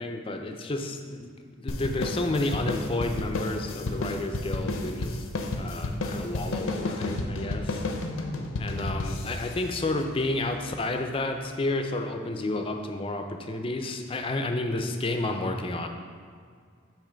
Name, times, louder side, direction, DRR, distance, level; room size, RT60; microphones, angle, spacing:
voice 1, 0.0-1.3 1.6-5.3 5.5-7.8 8.6-15.9, left 2 dB, 25° left, 5 dB, 0.4 m, -31 dB
end rock groove, 1.7-10.5, left 2 dB, 80° left, 0.6 m, -32 dB
8.7 x 2.9 x 5.0 m, 2.1 s
head